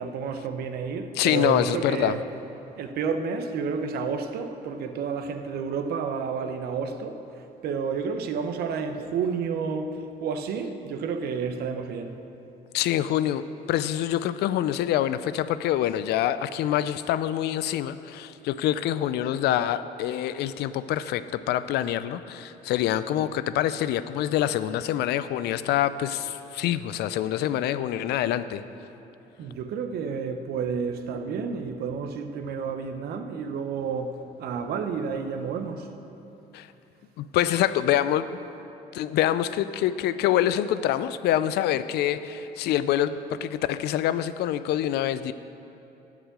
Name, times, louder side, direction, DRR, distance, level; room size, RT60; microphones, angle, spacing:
voice 1, 0.0-2.3 2.8-7.2 7.6-12.2 29.4-35.9, right 5 dB, 70° right, 7 dB, 0.8 m, -30 dB
voice 2, 1.2-2.2 12.7-13.4 13.7-28.6 36.5-36.7 37.2-38.4 38.9-45.3, left 11 dB, 75° left, 14 dB, 0.4 m, -26 dB
10.0 x 5.0 x 8.0 m, 3.0 s
cardioid pair, 110°, 17 cm